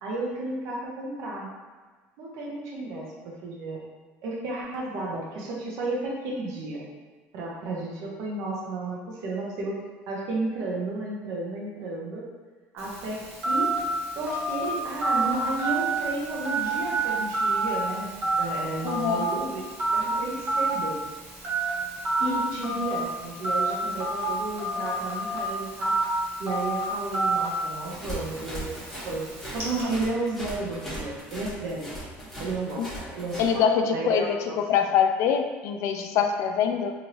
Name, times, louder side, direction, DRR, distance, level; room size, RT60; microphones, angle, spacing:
voice 1, 0.0-1.5 2.2-3.1 3.4-3.9 4.2-6.8 7.3-9.7 10.1-12.2 12.7-13.7 14.1-18.1 18.4-19.6 19.9-21.0 22.2-26.0 26.4-29.2 29.5-32.0 32.4-33.6 33.9-34.6, right 2 dB, 70° right, -3 dB, 0.8 m, -32 dB
Telephone, 12.8-29.8, right 2 dB, 45° right, 1.2 m, -29 dB
voice 2, 18.8-19.3 22.2-22.9 32.8-32.9 33.4-34.4 34.7-36.9, left 7 dB, 65° left, 5 dB, 0.3 m, -24 dB
sound 1, 27.8-33.5, right 1 dB, 5° left, 1.2 m, -38 dB
2.9 x 2.6 x 2.8 m, 1.4 s
supercardioid pair, 105°, 5 cm